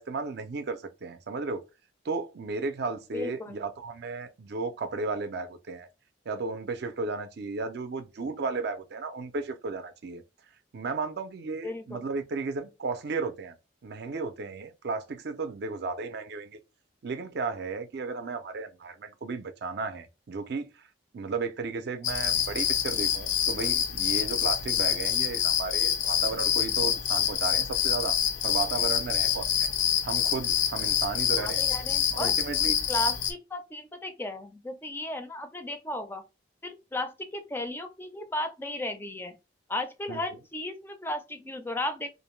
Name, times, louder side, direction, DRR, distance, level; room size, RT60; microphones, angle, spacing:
voice 1, 0.0-1.6 2.0-5.9 6.3-10.2 10.7-13.5 13.8-16.6 17.0-20.7 21.1-28.2 28.4-29.7 30.0-31.6 32.1-32.8 40.1-40.2, right 4 dB, 60° right, 0.4 m, -34 dB
voice 2, 3.1-3.6 11.6-12.0 31.4-32.3 32.9-36.2 36.6-39.3 39.7-42.1, left 1 dB, 10° left, 0.4 m, -35 dB
sound 1, 22.0-33.3, left 9 dB, 75° left, 0.5 m, -26 dB
2.5 x 2.1 x 3.1 m
head